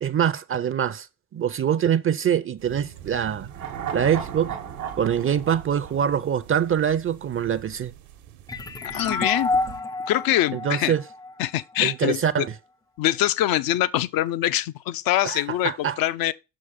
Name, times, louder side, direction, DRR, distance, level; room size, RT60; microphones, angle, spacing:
voice 1, 0.0-1.1 1.3-3.5 3.9-4.6 5.0-7.9 10.5-11.0 11.8-12.5 15.2-16.0, right 8 dB, 30° right, 0.6 m, -24 dB
sound 1, 2.6-9.8, right 10 dB, 70° right, 1.2 m, -44 dB
sound 2, 3.5-6.9 7.2-7.3, right 8 dB, 90° right, 1.2 m, -36 dB
sound 3, 8.5-11.9, left 2 dB, 10° left, 0.4 m, -29 dB
voice 2, 8.8-9.5 10.1-10.9 11.4-12.5 13.0-16.3, left 14 dB, 55° left, 0.6 m, -24 dB
6.3 x 5.1 x 5.8 m
hypercardioid pair, 50°, 42 cm